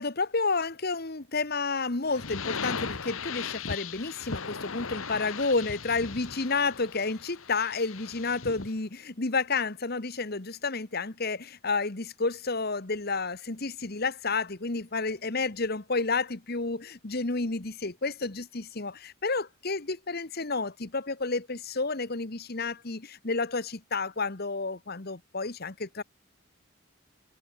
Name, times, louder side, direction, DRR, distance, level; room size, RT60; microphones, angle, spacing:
voice 1, 0.0-26.0, left 3 dB, 45° left, 1.3 m, -30 dB
sound 1, 2.1-8.8, left 5 dB, 70° left, 1.5 m, -37 dB
head